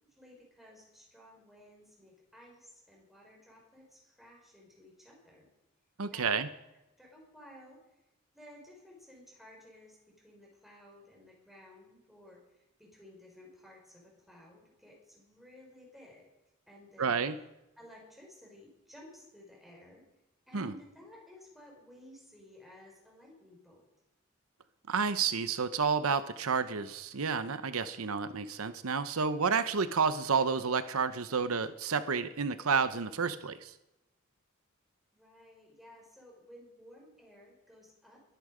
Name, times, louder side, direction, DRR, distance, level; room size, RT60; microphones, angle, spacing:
voice 1, 0.0-5.5 6.1-6.4 7.0-7.8 8.3-16.2 16.7-17.3 17.8-20.0 20.5-23.8 35.1-38.2, left 1 dB, ahead, -2 dB, 5.3 m, -55 dB
voice 2, 6.0-6.5 17.0-17.3 20.5-20.7 24.9-33.7, right 5 dB, 85° right, 12 dB, 0.8 m, -30 dB
22.0 x 10.0 x 5.0 m, 0.93 s
head